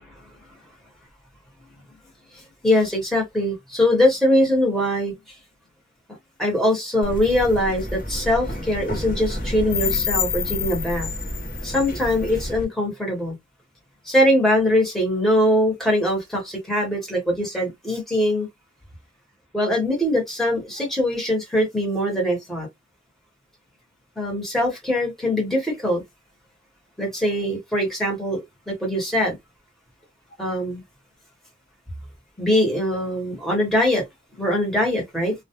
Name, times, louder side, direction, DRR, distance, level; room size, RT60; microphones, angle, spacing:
voice 1, 2.6-5.1 6.4-11.1 11.6-13.3 14.1-18.5 19.5-22.7 24.2-26.0 27.0-29.3 30.4-30.8 32.4-34.0 34.4-35.3, left 1 dB, ahead, 1.0 m, -22 dB
sound 1, 7.0-12.6, left 3 dB, 45° left, 0.8 m, -28 dB
2.2 x 2.0 x 2.8 m
head